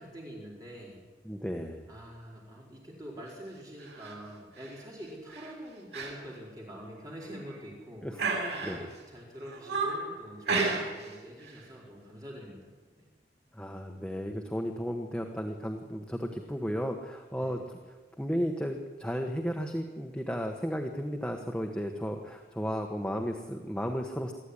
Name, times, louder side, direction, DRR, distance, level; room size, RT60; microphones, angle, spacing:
voice 1, 0.0-1.1 1.9-8.1 8.6-12.7 13.0-13.1 17.4-17.6, equal, 20° right, -4 dB, 4.7 m, -45 dB
voice 2, 1.2-1.8 8.0-8.2 8.6-8.8 13.5-17.6 17.9-24.3, equal, 5° left, 2 dB, 1.3 m, -34 dB
sound 1, 3.8-4.1 4.6-4.8 5.3-5.5 5.9-6.1 6.5-6.6 7.2-7.7 8.2-9.0 9.4-10.1 10.5-11.1 11.4-11.6, right 3 dB, 85° right, 7.3 m, -33 dB
24.0 x 14.5 x 10.0 m, 1.4 s
head